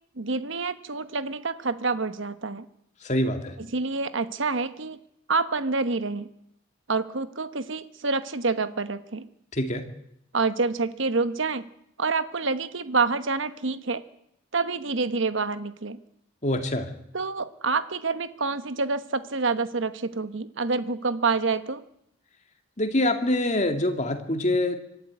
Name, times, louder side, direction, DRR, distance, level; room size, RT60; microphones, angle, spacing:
voice 1, 0.2-2.7 3.6-5.0 5.3-6.3 6.9-9.3 10.3-11.7 12.0-14.0 14.5-16.0 17.1-21.8, right 4 dB, 60° right, 12 dB, 1.1 m, -27 dB
voice 2, 3.0-3.5 9.5-9.8 16.4-16.9 22.8-24.8, left 1 dB, 35° left, 6 dB, 2.2 m, -25 dB
24.5 x 12.0 x 9.6 m, 0.76 s
head